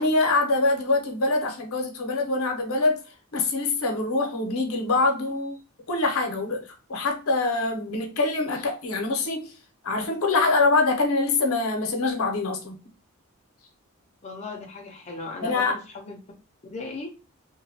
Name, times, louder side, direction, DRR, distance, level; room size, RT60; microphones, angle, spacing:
voice 1, 0.0-3.0 3.3-5.6 5.9-6.6 6.9-9.5 9.8-12.8 15.4-15.7, left 3 dB, 75° left, 0.7 m, -24 dB
voice 2, 14.2-16.2 16.7-17.1, left 3 dB, 30° left, 0.4 m, -37 dB
2.9 x 2.2 x 2.6 m
head